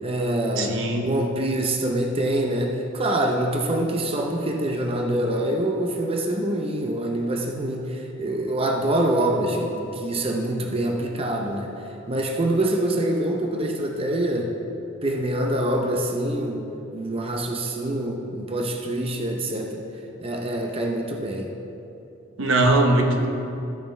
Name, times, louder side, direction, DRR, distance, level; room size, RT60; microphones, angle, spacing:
voice 1, 0.0-11.7 12.1-14.5 15.0-16.6 16.9-19.9 20.2-21.5, right 1 dB, 30° right, 2 dB, 0.7 m, -25 dB
voice 2, 0.6-1.1 22.4-23.3, right 2 dB, 85° right, 3 dB, 1.0 m, -20 dB
14.0 x 6.5 x 3.3 m, 2.8 s
head